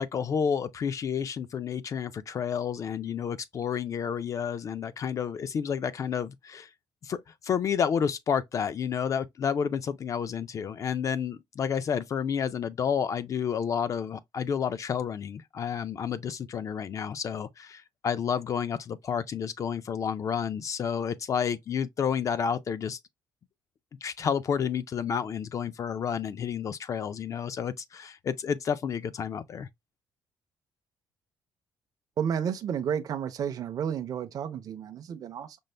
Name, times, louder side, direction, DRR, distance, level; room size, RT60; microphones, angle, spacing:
voice 1, 0.0-6.7 7.0-23.0 24.0-29.7, left 7 dB, 40° left, 0.4 m, -30 dB
voice 2, 32.2-35.6, right 8 dB, 50° right, 0.5 m, -31 dB
5.2 x 2.0 x 3.2 m
cardioid pair, 120°, 8 cm